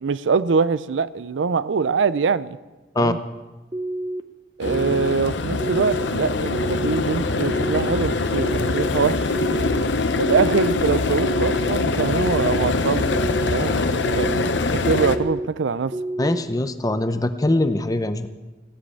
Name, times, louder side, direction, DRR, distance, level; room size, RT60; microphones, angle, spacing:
voice 1, 0.0-2.6 3.0-3.2 4.6-8.5 8.7-9.2 10.1-13.2 13.5-14.4 14.7-15.9, right 5 dB, 75° right, 16 dB, 0.5 m, -23 dB
sound 1, 3.7-4.2 4.7-5.1 5.6-6.1 6.5-7.0 7.5-8.0 8.4-8.9 9.3-9.8 10.3-10.8 11.2-11.7 12.2-12.6 13.1-13.6 14.0-14.5 15.0-15.5 15.9-16.4, right 1 dB, 20° right, 0.6 m, -28 dB
sound 2, 4.6-15.2, left 3 dB, 70° left, 0.8 m, -23 dB
voice 2, 16.2-18.3, left 1 dB, 20° left, 10 dB, 0.7 m, -22 dB
16.5 x 7.7 x 8.4 m, 1.2 s
head